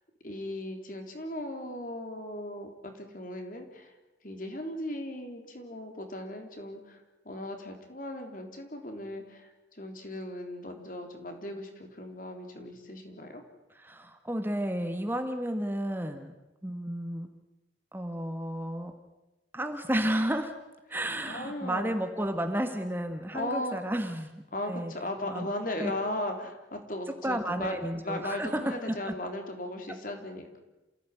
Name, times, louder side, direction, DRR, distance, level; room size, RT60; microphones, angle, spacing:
voice 1, 0.2-3.9 4.2-13.4 21.2-21.9 23.3-23.8 24.5-27.8 28.0-30.6, left 1 dB, 45° left, 4 dB, 3.7 m, -37 dB
voice 2, 13.7-16.3 16.6-17.3 17.9-18.9 19.5-20.5 20.9-24.9 25.3-25.5 25.8-25.9 27.2-29.2, right 1 dB, 10° right, 6 dB, 1.6 m, -32 dB
28.0 x 16.0 x 9.4 m, 1.0 s
head